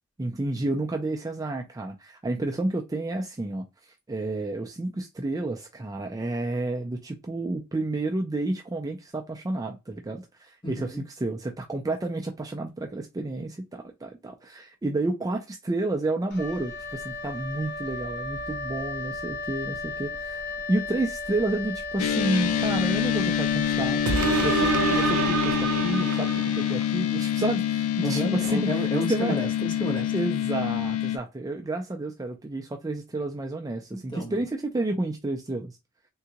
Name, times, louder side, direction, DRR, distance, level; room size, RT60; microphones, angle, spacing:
voice 1, 0.2-20.4 20.7-24.0 24.4-28.8 29.1-29.4 30.1-35.8, right 2 dB, 15° right, 0.4 m, -30 dB
voice 2, 10.6-11.0 28.0-30.1 33.9-34.4, equal, 20° left, 1.0 m, -31 dB
Wind instrument woodwind instrument, 16.3-25.8, left 3 dB, 55° left, 0.8 m, -35 dB
sound 1, 22.0-31.2, left 10 dB, 90° left, 0.4 m, -26 dB
sound 2, 24.1-27.0 27.5-27.6, right 4 dB, 85° right, 0.5 m, -27 dB
3.7 x 2.3 x 2.8 m
head